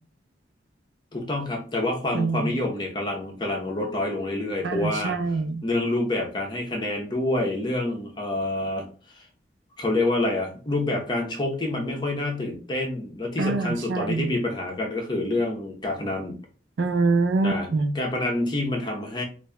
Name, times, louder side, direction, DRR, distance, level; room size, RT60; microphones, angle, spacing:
voice 1, 1.1-5.1 5.6-8.9 9.1-9.2 9.8-16.4 17.4-17.7 17.9-19.2, left 2 dB, 25° left, 0 dB, 0.7 m, -27 dB
voice 2, 2.1-2.6 4.6-5.6 13.4-14.3 16.8-18.0, right 3 dB, 90° right, 8 dB, 0.5 m, -25 dB
5.1 x 2.6 x 2.2 m, 0.39 s
head